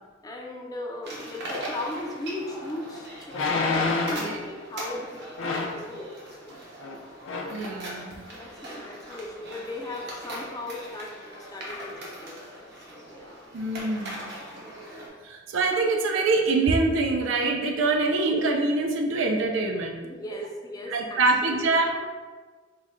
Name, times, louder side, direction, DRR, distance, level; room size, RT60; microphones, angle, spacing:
voice 1, 0.2-6.1 6.4-6.5 8.2-12.6 12.9-13.6 20.0-21.2 21.5-21.7, left 2 dB, 20° left, 1 dB, 0.3 m, -38 dB
sound 1, 1.0-15.1, right 1 dB, 60° right, 0.9 m, -40 dB
sound 2, 2.3-2.4 3.3-4.3 5.4-5.8 6.8-7.0 7.2-7.6 8.1-8.2, left 3 dB, 85° left, 0.5 m, -27 dB
voice 2, 7.5-8.3 13.5-14.3 15.2-20.0 20.9-22.1, right 3 dB, 80° right, 2 dB, 0.4 m, -25 dB
3.9 x 2.1 x 3.7 m, 1.4 s
head